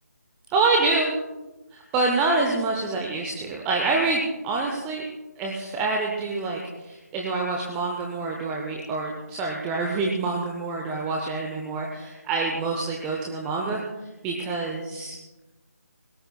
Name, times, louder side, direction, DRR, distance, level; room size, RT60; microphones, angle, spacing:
voice 1, 0.5-1.1 1.7-5.0 5.4-13.8 14.2-15.2, right 3 dB, 10° right, 0 dB, 0.6 m, -26 dB
21.5 x 17.5 x 2.3 m, 1.1 s
figure-of-eight pair, 155°, 9 cm